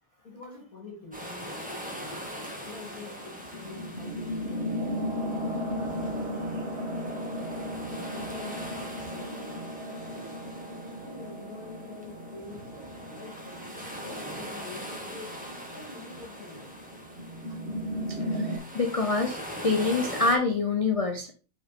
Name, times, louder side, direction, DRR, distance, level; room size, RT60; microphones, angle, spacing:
voice 1, 0.2-1.6 2.0-2.2 2.6-7.5 8.1-9.7 10.1-10.3 11.0-13.3 13.9-16.8, left 3 dB, 60° left, 0 dB, 3.0 m, -47 dB
sound 1, 1.1-20.4, equal, 5° right, 1.5 m, -42 dB
sound 2, 1.8-18.6, equal, 40° right, 2.3 m, -36 dB
voice 2, 18.3-21.3, left 3 dB, 35° left, 4 dB, 0.5 m, -26 dB
5.7 x 4.7 x 4.2 m, 0.36 s
omnidirectional pair, 1.7 m